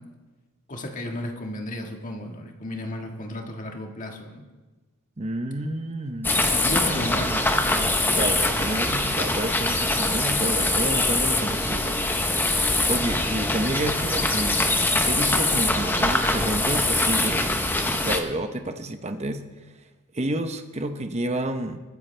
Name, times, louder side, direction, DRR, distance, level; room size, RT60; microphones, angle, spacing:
voice 1, 0.7-4.4 6.5-8.4, left 1 dB, 35° left, 2 dB, 1.6 m, -34 dB
voice 2, 5.2-7.5 8.1-12.3 12.9-14.7 15.0-17.6 17.8-19.4 20.1-21.8, right 1 dB, 30° right, 7 dB, 0.9 m, -30 dB
sound 1, 6.2-18.2, left 2 dB, 10° left, 0.8 m, -23 dB
22.0 x 9.5 x 3.4 m, 1.2 s
head